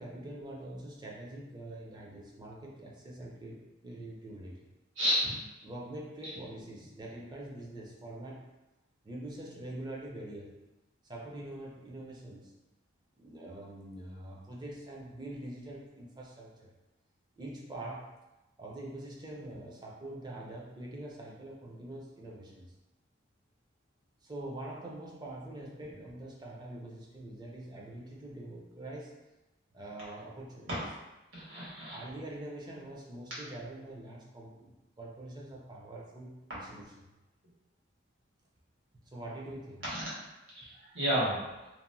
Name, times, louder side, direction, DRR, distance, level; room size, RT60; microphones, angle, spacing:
voice 1, 0.0-4.6 5.6-8.5 9.0-10.6 11.1-12.5 13.2-16.7 17.4-18.1 18.6-22.7 24.2-29.1 29.7-30.7 31.9-36.9 39.1-39.8, right 1 dB, 20° right, -3 dB, 0.4 m, -44 dB
voice 2, 5.0-5.3 31.3-32.0 39.9-40.0 40.5-41.7, equal, 70° right, -9 dB, 1.3 m, -31 dB
2.8 x 2.1 x 2.6 m, 1.0 s
head